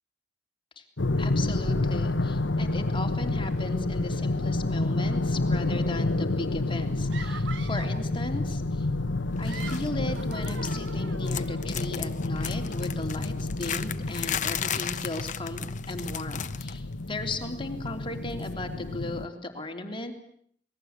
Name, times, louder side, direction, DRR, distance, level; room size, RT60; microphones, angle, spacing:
sound 1, 1.0-19.3, left 2 dB, 90° left, 1.1 m, -29 dB
voice 1, 1.2-8.9 9.4-20.1, left 2 dB, 30° left, 5 dB, 3.2 m, -36 dB
sound 2, 7.1-8.1 9.2-11.6, right 6 dB, 85° right, 1.2 m, -43 dB
sound 3, 9.5-9.9 10.2-11.0 11.2-16.8 17.1-17.3 18.4-18.5, left 9 dB, 45° left, 1.1 m, -35 dB
27.5 x 21.0 x 8.2 m, 0.63 s
head